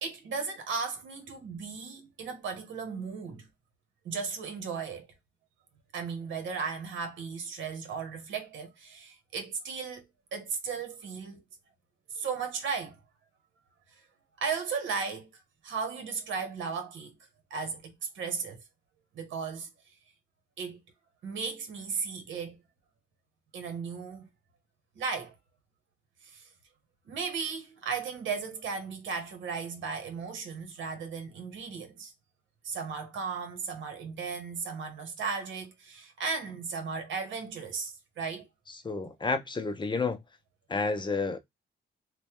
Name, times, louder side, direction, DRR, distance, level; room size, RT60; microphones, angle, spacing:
voice 1, 0.0-3.5 4.0-5.1 5.9-10.0 10.3-11.4 12.1-13.0 14.4-15.3 15.6-17.1 17.5-18.6 19.1-19.7 20.6-20.8 21.2-22.6 23.5-24.3 24.9-25.3 26.2-26.5 27.1-32.1 32.6-38.5, right 5 dB, 70° right, 1.1 m, -35 dB
voice 2, 38.8-40.2 40.7-41.4, left 4 dB, 25° left, 0.5 m, -30 dB
3.1 x 2.2 x 2.9 m
cardioid pair, 90°, 20 cm